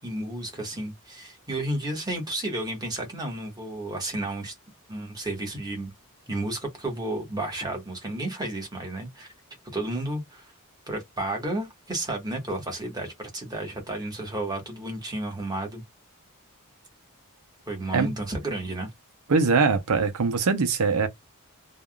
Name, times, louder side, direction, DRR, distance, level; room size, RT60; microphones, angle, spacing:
voice 1, 0.0-4.5 4.9-5.9 6.3-9.3 9.7-10.5 10.9-15.8 17.7-18.9, right 1 dB, 20° right, 1.3 m, -32 dB
voice 2, 19.3-21.1, right 4 dB, 80° right, 0.6 m, -22 dB
3.4 x 2.3 x 2.3 m
head